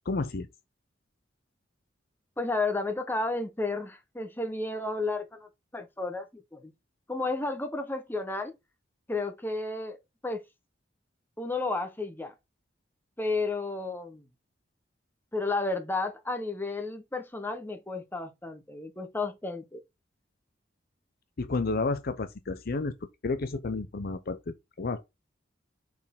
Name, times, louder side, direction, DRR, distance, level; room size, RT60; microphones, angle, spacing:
voice 1, 0.1-0.5 21.4-22.9 23.2-25.0, left 3 dB, 55° left, 0.6 m, -31 dB
voice 2, 2.4-6.7 7.1-8.5 9.1-10.0 10.2-10.4 11.4-12.3 13.2-14.3 15.3-19.8, left 3 dB, 10° left, 1.0 m, -32 dB
6.3 x 4.2 x 3.7 m
head